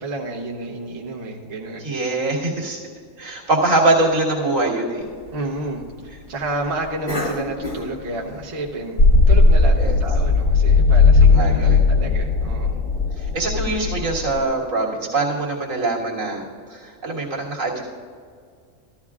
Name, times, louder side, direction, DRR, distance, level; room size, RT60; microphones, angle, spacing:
voice 1, 0.0-1.9 5.3-5.8 6.3-12.8, right 2 dB, 50° right, -2 dB, 1.2 m, -30 dB
voice 2, 1.8-2.8 3.2-5.1 9.8-10.0 11.2-11.8 13.2-16.4 16.7-17.8, right 2 dB, 85° right, -4 dB, 2.1 m, -23 dB
Cough, 5.0-10.5, left 1 dB, 60° left, 2.3 m, -35 dB
sound 1, 9.0-14.4, left 3 dB, 80° left, 1.6 m, -16 dB
14.0 x 13.5 x 2.4 m, 2.1 s
omnidirectional pair, 1.3 m